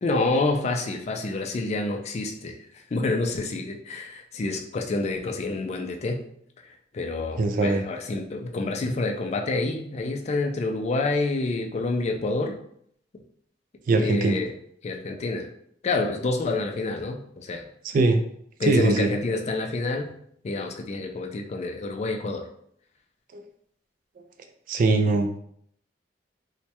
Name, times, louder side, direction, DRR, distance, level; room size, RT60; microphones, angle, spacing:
voice 1, 0.0-2.6 2.9-6.2 6.9-12.6 13.9-14.5 14.8-15.5 15.8-17.6 18.6-20.1 20.4-22.5, left 3 dB, 40° left, 3 dB, 0.3 m, -28 dB
voice 2, 7.4-7.8 13.9-14.4 17.8-18.2 18.6-19.1 23.3-23.4 24.7-25.3, right 3 dB, 50° right, 7 dB, 0.3 m, -21 dB
3.1 x 2.1 x 2.8 m, 0.68 s
head